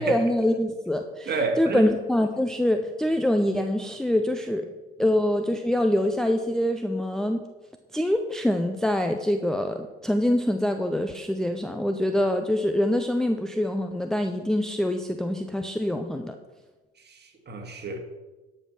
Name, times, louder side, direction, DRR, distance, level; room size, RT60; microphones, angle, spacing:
voice 1, 0.0-4.7 5.0-7.4 7.9-16.4, left 1 dB, ahead, 5 dB, 0.7 m, -25 dB
voice 2, 1.3-1.9 17.0-18.0, right 3 dB, 30° right, 4 dB, 2.3 m, -29 dB
12.5 x 5.6 x 6.0 m, 1.2 s
hypercardioid pair, 70°, 32 cm